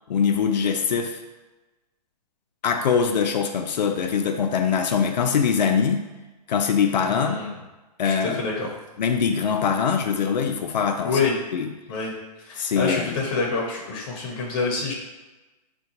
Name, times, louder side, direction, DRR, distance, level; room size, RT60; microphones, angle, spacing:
voice 1, 0.1-1.2 2.6-6.1 6.5-7.4 8.0-8.4 9.0-11.2 11.5-11.7 12.6-13.2, left 6 dB, 85° left, 4 dB, 0.4 m, -23 dB
voice 2, 7.0-7.6 8.0-8.7 11.0-11.4 11.9-12.1 12.4-14.9, left 4 dB, 35° left, -1 dB, 0.6 m, -27 dB
3.7 x 2.2 x 2.8 m, 1.1 s
hypercardioid pair, 150°, 21 cm